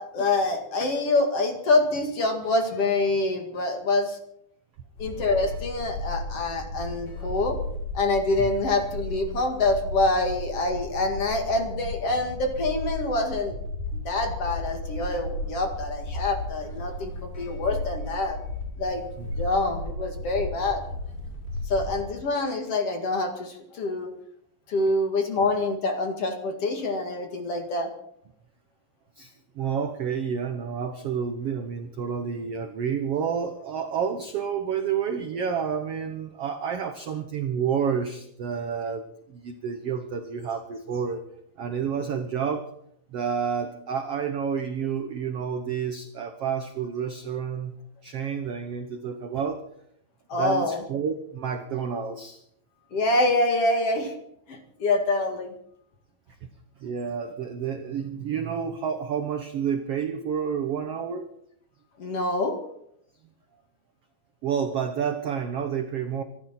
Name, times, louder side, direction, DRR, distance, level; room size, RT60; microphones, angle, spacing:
voice 1, 0.0-4.2 5.0-7.6 7.9-13.5 13.9-18.4 18.8-19.0 19.4-20.8 21.7-24.1 24.7-27.9 50.3-50.8 52.9-54.1 54.5-55.5 62.0-62.6, left 2 dB, 45° left, 4 dB, 2.6 m, -26 dB
sound 1, 5.0-22.3, left 1 dB, 65° left, 8.1 m, -34 dB
voice 2, 29.2-41.2 41.6-42.7 43.1-47.7 48.0-49.6 50.4-52.4 56.4-56.5 56.8-61.3 64.4-66.2, right 7 dB, 80° right, 7 dB, 1.3 m, -29 dB
26.0 x 12.5 x 4.4 m, 0.72 s
omnidirectional pair, 4.3 m